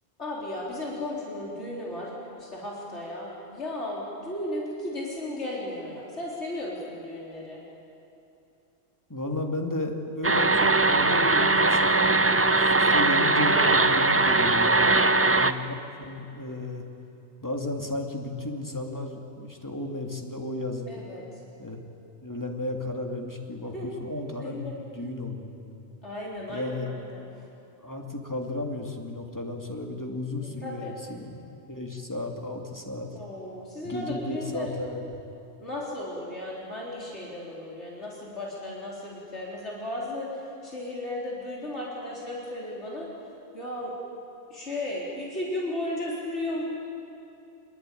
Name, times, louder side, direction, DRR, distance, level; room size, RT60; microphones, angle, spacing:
voice 1, 0.2-2.1 2.4-7.6 14.7-15.7 20.9-21.2 23.7-23.9 24.4-24.8 26.0-27.3 30.6-30.9 33.1-34.7 35.6-43.1 43.5-43.9 44.5-46.6, left 1 dB, 80° left, -5 dB, 4.4 m, -35 dB
voice 2, 9.1-14.8 15.2-16.8 17.4-21.0 21.6-21.9 22.2-24.6 25.0-25.8 26.5-26.9 27.8-31.4 31.7-33.1 33.8-35.0, left 2 dB, 15° left, 1 dB, 2.5 m, -33 dB
sound 1, 10.2-15.5, right 2 dB, 20° right, 0.4 m, -21 dB
26.5 x 21.5 x 9.3 m, 2.8 s
omnidirectional pair, 1.1 m